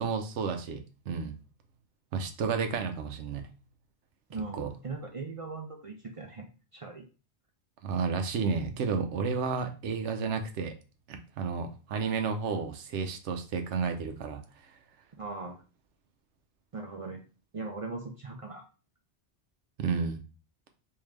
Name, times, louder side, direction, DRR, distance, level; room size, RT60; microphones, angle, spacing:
voice 1, 0.0-1.3 2.1-3.5 4.5-4.7 7.8-10.7 11.1-14.4 19.8-20.2, right 5 dB, 85° right, 6 dB, 0.9 m, -31 dB
voice 2, 4.3-7.1 15.2-15.6 16.7-17.2 17.5-18.6, right 3 dB, 55° right, 2 dB, 0.3 m, -39 dB
3.6 x 2.7 x 3.1 m, 0.34 s
omnidirectional pair, 1.2 m